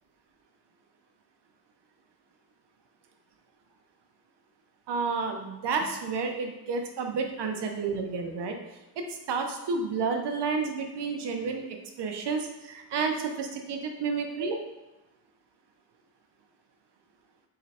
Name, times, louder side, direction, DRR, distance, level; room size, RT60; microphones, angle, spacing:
voice 1, 4.9-8.6 9.0-14.6, right 4 dB, 75° right, 4 dB, 0.7 m, -31 dB
3.8 x 3.1 x 4.2 m, 1.0 s
wide cardioid pair, 155°, 42 cm